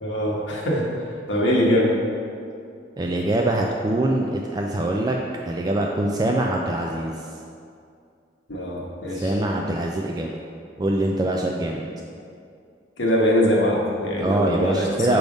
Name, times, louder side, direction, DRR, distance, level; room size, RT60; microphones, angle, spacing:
voice 1, 0.0-1.9 8.5-9.3 11.8-11.9 13.0-15.2, equal, 85° left, -3 dB, 1.2 m, -22 dB
voice 2, 3.0-5.2 5.5-7.1 9.1-10.3 10.8-11.8 14.2-15.2, right 1 dB, 20° right, 0 dB, 0.3 m, -23 dB
6.1 x 3.5 x 5.2 m, 2.4 s
head